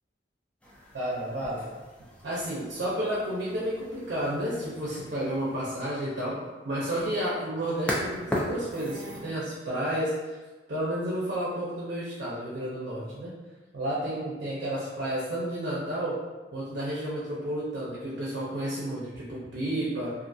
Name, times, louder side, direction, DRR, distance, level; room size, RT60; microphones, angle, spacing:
sound 1, 0.6-9.3, equal, 5° left, 0.3 m, -39 dB
voice 1, 0.9-1.7 2.2-6.4 6.6-10.4 10.7-13.3 13.7-16.2 16.5-20.1, right 1 dB, 60° right, -8 dB, 0.6 m, -31 dB
2.4 x 2.4 x 2.6 m, 1.2 s
head